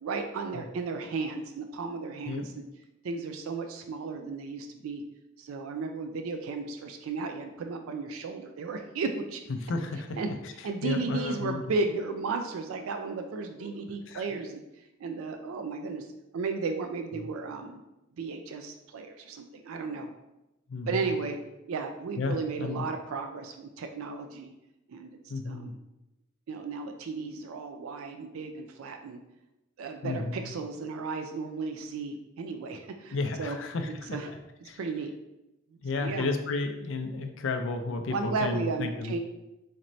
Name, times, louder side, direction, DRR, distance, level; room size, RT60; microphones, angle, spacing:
voice 1, 0.0-2.6 3.0-5.0 5.4-9.4 10.2-10.3 10.6-14.6 15.0-16.1 16.3-17.8 18.2-20.1 20.9-21.4 21.7-24.5 24.9-25.2 25.5-25.8 26.5-29.2 29.8-33.6 34.1-34.3 34.6-35.1 36.0-36.3 38.1-39.2, right 4 dB, 80° right, 5 dB, 0.4 m, -34 dB
voice 2, 9.5-10.5 10.8-11.6 13.6-13.7 14.1-14.2 20.7-21.1 22.2-22.8 25.3-25.7 30.0-30.5 33.1-34.2 34.7-34.8 35.8-39.2, left 3 dB, 60° left, 6 dB, 0.4 m, -32 dB
4.3 x 3.0 x 2.6 m, 0.94 s
head